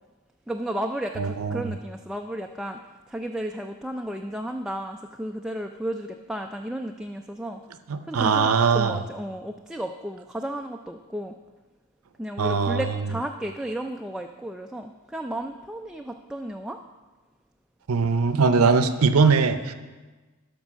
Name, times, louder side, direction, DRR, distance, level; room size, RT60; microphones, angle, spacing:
voice 1, 0.5-2.8 3.1-7.6 8.1-11.4 12.2-16.8, right 1 dB, 5° right, 3 dB, 0.3 m, -33 dB
voice 2, 1.2-1.6 7.9-9.0 12.4-12.8 17.9-19.7, right 5 dB, 85° right, 10 dB, 0.6 m, -21 dB
12.5 x 5.3 x 6.1 m, 1.3 s
head